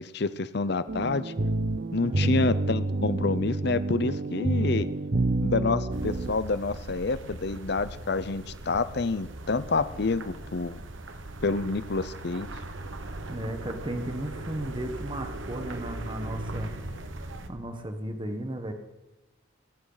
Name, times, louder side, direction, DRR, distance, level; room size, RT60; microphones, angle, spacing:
voice 1, 0.0-1.3 1.9-4.9 5.4-10.8 11.4-12.5, left 3 dB, 55° left, 15 dB, 0.7 m, -28 dB
sound 1, 0.9-6.3, right 2 dB, 50° right, 0.7 m, -28 dB
sound 2, 5.9-17.5, right 2 dB, 75° right, 1.4 m, -39 dB
voice 2, 13.3-16.7 17.5-18.7, right 1 dB, 25° right, 6 dB, 1.3 m, -35 dB
19.0 x 17.0 x 4.0 m, 1.1 s
head